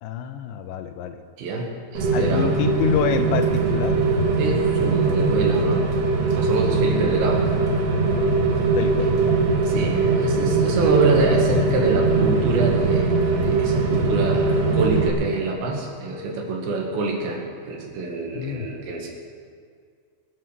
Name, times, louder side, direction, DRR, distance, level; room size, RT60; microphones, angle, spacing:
voice 1, 0.0-1.2 2.1-4.0 8.7-9.4 9.8-9.9 18.3-18.7, left 8 dB, 85° left, 7 dB, 3.0 m, -27 dB
voice 2, 1.4-2.5 4.4-5.9 6.3-7.4 9.0-9.1 9.6-19.1, right 3 dB, 75° right, 0 dB, 4.2 m, -26 dB
Rain, 1.9-15.1, right 3 dB, 50° right, 2.1 m, -21 dB
22.5 x 7.8 x 6.8 m, 2.1 s
omnidirectional pair, 5.2 m